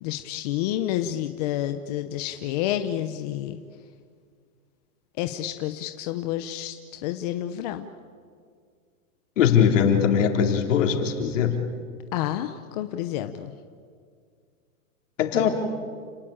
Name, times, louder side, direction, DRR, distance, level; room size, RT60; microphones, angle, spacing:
voice 1, 0.0-3.6 5.2-7.9 12.1-13.5, left 12 dB, 30° left, 8 dB, 0.8 m, -29 dB
voice 2, 9.4-11.5 15.2-15.5, left 8 dB, 60° left, 4 dB, 4.0 m, -20 dB
29.5 x 19.0 x 8.8 m, 2.1 s
hypercardioid pair, 165°, 43 cm